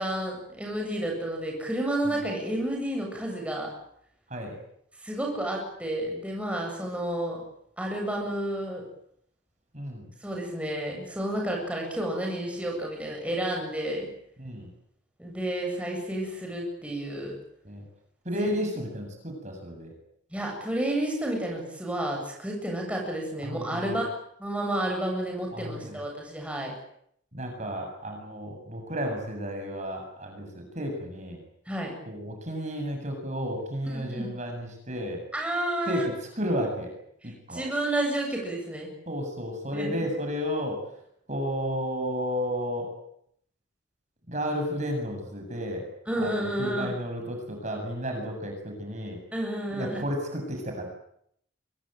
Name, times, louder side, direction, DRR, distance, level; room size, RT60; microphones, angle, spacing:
voice 1, 0.0-3.7 5.0-7.4 7.8-8.8 10.2-14.1 15.2-17.3 18.4-18.5 20.3-24.1 24.4-26.7 31.7-31.9 33.9-34.4 35.3-36.0 37.2-38.9 39.7-40.0 46.1-47.0 49.3-50.0, right 1 dB, 5° right, 0 dB, 8.0 m, -31 dB
voice 2, 9.7-10.1 14.4-14.7 17.6-17.8 18.2-19.9 23.4-24.0 25.5-26.0 27.3-31.4 32.1-35.2 35.9-36.0 36.4-36.9 37.5-37.6 39.1-40.8 41.3-42.9 44.3-45.8 46.2-49.2 49.7-50.8, equal, 35° right, 3 dB, 7.9 m, -32 dB
25.0 x 22.5 x 9.2 m, 0.71 s
head